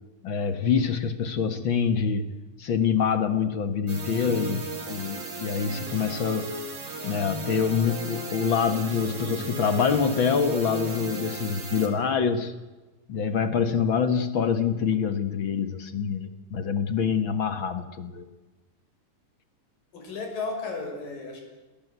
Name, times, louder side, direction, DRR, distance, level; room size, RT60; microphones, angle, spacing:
voice 1, 0.2-6.5 7.0-12.5 13.1-18.3, left 6 dB, 50° left, 10 dB, 1.5 m, -26 dB
sound 1, 3.9-11.9, right 3 dB, 45° right, 5.0 m, -36 dB
voice 2, 19.9-21.4, left 3 dB, 70° left, 3 dB, 7.4 m, -34 dB
29.0 x 21.0 x 8.2 m, 1.2 s
omnidirectional pair, 4.1 m